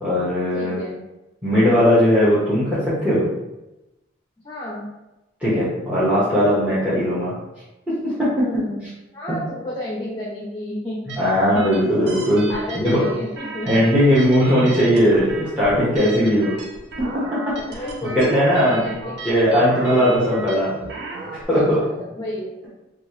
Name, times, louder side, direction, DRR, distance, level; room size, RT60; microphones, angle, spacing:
voice 1, 0.0-0.8 1.4-3.3 5.4-7.3 7.9-8.3 9.3-9.4 11.2-12.4 12.7-13.0 13.6-16.5 17.0-17.1 17.3-18.8 19.2-20.7 21.5-21.8, equal, 5° right, -10 dB, 0.8 m, -18 dB
voice 2, 0.5-1.0 4.4-4.9 8.3-8.9 9.1-13.7 16.2-16.5 17.7-19.1 20.0-20.3 21.5-22.5, left 1 dB, 25° left, -4 dB, 0.5 m, -32 dB
sound 1, 11.1-21.4, right 3 dB, 60° right, 0.4 m, -35 dB
2.8 x 2.3 x 3.0 m, 0.96 s
head